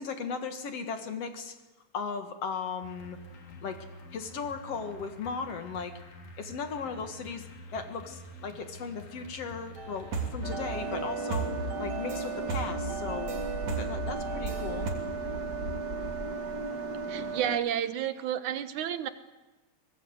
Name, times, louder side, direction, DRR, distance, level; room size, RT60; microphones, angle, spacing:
voice 1, 0.0-1.6 1.9-3.2 3.6-3.8 4.1-6.0 6.4-11.5 11.8-13.3 13.8-14.9, left 5 dB, 55° left, 7 dB, 2.5 m, -37 dB
sound 1, 2.8-10.9, left 1 dB, 80° left, 4.6 m, -48 dB
sound 2, 9.8-14.9, right 3 dB, 65° right, 4.3 m, -36 dB
sound 3, 10.4-17.6, right 3 dB, 40° right, 1.8 m, -35 dB
voice 2, 17.1-19.1, right 10 dB, 80° right, 10 dB, 2.5 m, -31 dB
24.0 x 20.0 x 8.1 m, 1.1 s
omnidirectional pair, 3.5 m